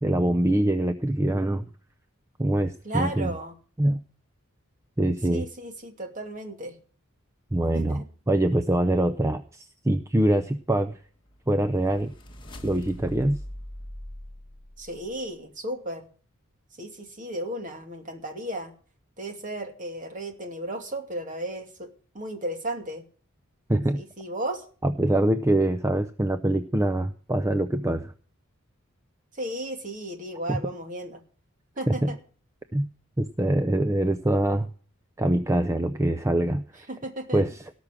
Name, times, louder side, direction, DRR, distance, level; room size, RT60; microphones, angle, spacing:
voice 1, 0.0-1.6 2.4-3.3 3.8-4.0 5.0-5.5 7.5-11.0 11.5-12.1 12.6-13.4 23.7-24.0 24.8-28.1 30.5-30.6 31.9-32.1 32.7-32.9 33.2-34.7 35.2-36.9 37.3-37.7, right 1 dB, 15° right, 10 dB, 0.5 m, -24 dB
voice 2, 2.8-3.6 5.3-6.8 7.7-8.0 14.8-16.1 16.8-18.7 19.2-21.9 22.1-23.0 23.9-24.6 29.3-31.2 31.8-32.2 36.9-37.4, right 1 dB, 40° right, 5 dB, 2.6 m, -34 dB
sound 1, 11.0-15.3, equal, 25° left, 1.7 m, -42 dB
18.0 x 6.2 x 7.4 m, 0.42 s
head